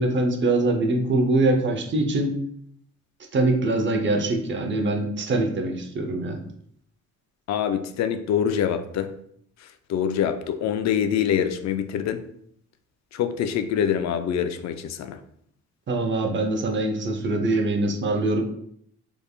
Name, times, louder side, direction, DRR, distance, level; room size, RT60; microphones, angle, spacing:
voice 1, 0.0-2.4 3.3-6.4 15.9-18.4, right 2 dB, 40° right, 3 dB, 0.7 m, -23 dB
voice 2, 7.5-9.1 9.9-12.2 13.1-15.2, left 8 dB, 65° left, 9 dB, 0.5 m, -25 dB
3.5 x 3.3 x 2.4 m, 0.68 s
cardioid pair, 90°, 30 cm